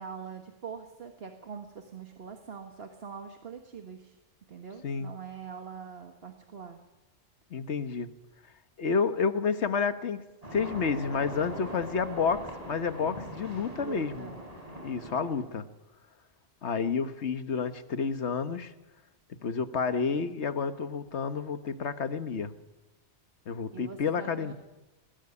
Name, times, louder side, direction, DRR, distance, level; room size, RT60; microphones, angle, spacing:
voice 1, 0.0-4.2 4.5-6.8 13.8-14.4 23.7-24.5, right 6 dB, 55° right, 6 dB, 1.7 m, -43 dB
voice 2, 7.5-8.1 8.8-10.2 10.5-14.3 14.8-15.7 16.6-18.7 19.4-22.5 23.5-24.5, left 5 dB, 65° left, 11 dB, 1.5 m, -30 dB
sound 1, 10.4-15.4, equal, 30° right, 5.2 m, -42 dB
21.0 x 16.5 x 9.8 m, 1.1 s
omnidirectional pair, 1.2 m